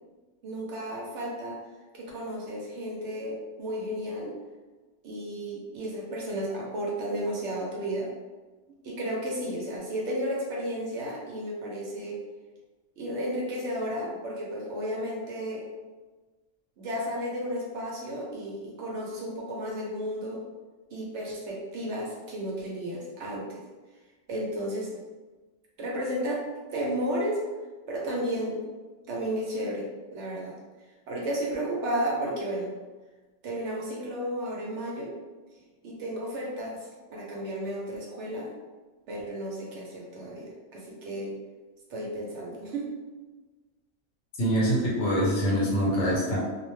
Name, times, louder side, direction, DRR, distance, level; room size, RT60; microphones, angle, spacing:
voice 1, 0.4-1.6 1.9-4.4 5.0-8.1 8.8-12.2 13.0-15.7 16.8-20.4 20.9-23.6 24.3-25.0 25.8-27.4 27.9-28.6 29.1-30.5 31.1-32.7 33.4-35.1 35.8-38.5 39.1-41.4 41.9-42.9, equal, 70° right, -3 dB, 0.9 m, -33 dB
voice 2, 44.4-46.4, equal, 70° left, -5 dB, 1.2 m, -24 dB
2.4 x 2.1 x 3.1 m, 1.3 s
omnidirectional pair, 1.3 m